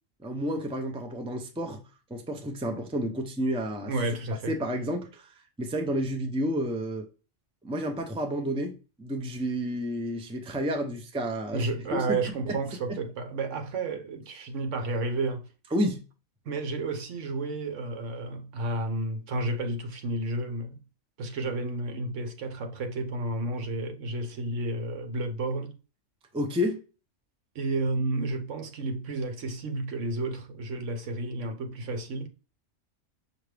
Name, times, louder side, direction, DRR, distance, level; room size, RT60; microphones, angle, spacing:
voice 1, 0.2-1.8 2.1-3.9 4.3-5.3 5.6-7.1 7.6-8.7 9.0-11.7 11.9-12.0 12.5-12.6 15.7-16.0 26.3-26.8, equal, 10° right, 0.4 m, -30 dB
voice 2, 3.9-4.5 11.5-15.5 16.4-20.8 21.2-25.8 27.5-32.3, right 2 dB, 75° right, 1.1 m, -31 dB
5.9 x 2.5 x 3.3 m
omnidirectional pair, 1.3 m